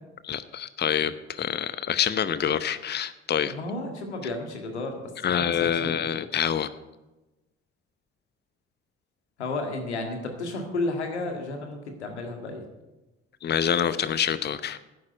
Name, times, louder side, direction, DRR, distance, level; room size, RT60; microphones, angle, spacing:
voice 1, 0.2-3.5 5.2-6.7 13.4-14.8, left 8 dB, 30° left, 14 dB, 0.8 m, -26 dB
voice 2, 3.5-5.0 5.2-5.5 5.8-5.9 9.4-12.6, left 2 dB, 85° left, 4 dB, 1.9 m, -32 dB
11.5 x 10.0 x 9.0 m, 1.1 s
figure-of-eight pair, 50°, 33 cm